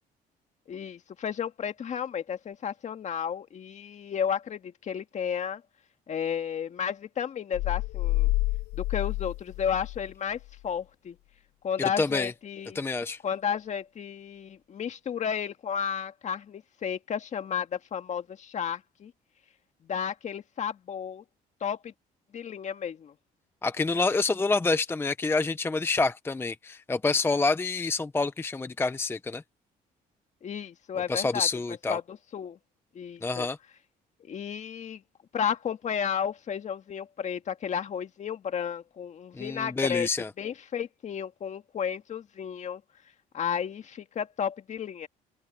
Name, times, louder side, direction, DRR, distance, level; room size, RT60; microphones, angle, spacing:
voice 1, 0.7-5.6 6.1-8.3 8.7-11.2 11.6-12.8 13.2-19.1 19.8-21.2 21.6-21.9 22.3-23.1 30.4-31.5 31.9-32.6 32.9-33.5 34.2-35.0 35.3-40.1 40.4-42.8 43.3-45.1, left 8 dB, 45° left, 1.9 m, -33 dB
sound 1, 7.5-10.1 10.4-10.6, left 19 dB, 80° left, 0.5 m, -29 dB
voice 2, 12.0-12.3 12.7-13.2 23.6-29.4 31.1-32.0 33.2-33.6 39.4-40.3, left 3 dB, 15° left, 0.6 m, -27 dB
open air
cardioid pair, 110°, 17 cm